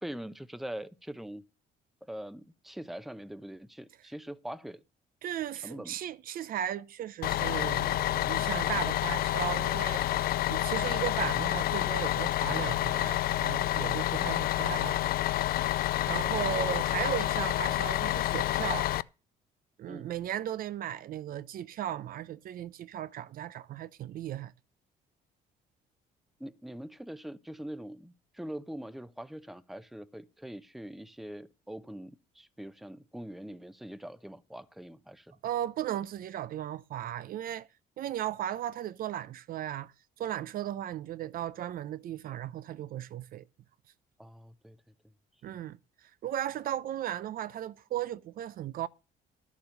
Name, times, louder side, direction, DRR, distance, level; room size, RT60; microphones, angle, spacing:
voice 1, 0.0-1.5 2.0-4.8 5.6-6.0 19.9-20.1 26.4-35.4 44.2-44.8 45.4-45.5, right 1 dB, ahead, 0.8 m, -43 dB
voice 2, 5.2-15.2 16.0-18.9 19.8-24.5 35.4-37.7 38.0-39.9 40.2-43.4 45.4-45.8 46.2-48.9, right 11 dB, 60° right, 0.7 m, -36 dB
Bus, 7.2-19.0, left 14 dB, 60° left, 0.5 m, -29 dB
11.5 x 7.4 x 6.5 m
cardioid pair, 110°, 17 cm